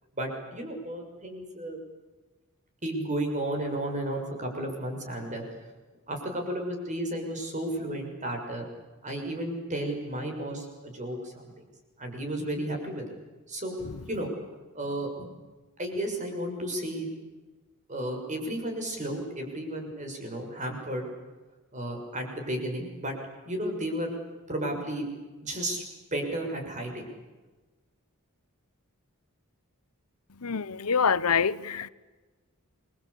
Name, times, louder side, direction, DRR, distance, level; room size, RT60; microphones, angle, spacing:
voice 1, 0.1-1.8 2.8-5.4 6.1-8.7 9.0-11.5 12.0-13.2 13.5-13.8 14.1-14.3 14.7-15.3 15.8-17.1 17.9-21.0 21.7-23.1 23.4-24.2 24.5-25.0 25.4-25.8 26.1-27.1, right 1 dB, 35° right, 3 dB, 6.6 m, -33 dB
voice 2, 30.4-31.9, left 6 dB, 80° left, 17 dB, 0.9 m, -25 dB
28.5 x 23.5 x 8.5 m, 1.2 s
head